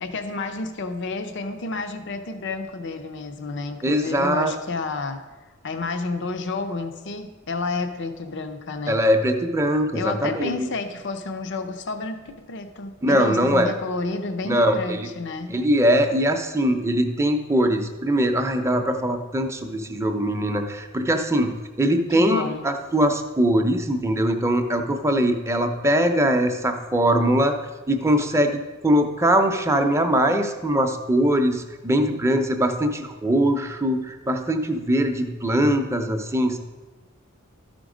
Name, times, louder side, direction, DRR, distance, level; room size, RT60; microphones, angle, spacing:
voice 1, 0.0-5.2 5.6-9.0 9.9-15.6 22.1-22.7, left 3 dB, 60° left, 8 dB, 0.6 m, -30 dB
voice 2, 3.8-4.5 8.9-10.7 13.0-13.7 14.4-15.0 15.5-27.6 27.9-36.6, equal, 15° right, 5 dB, 0.6 m, -21 dB
12.5 x 5.2 x 5.0 m, 1.2 s
head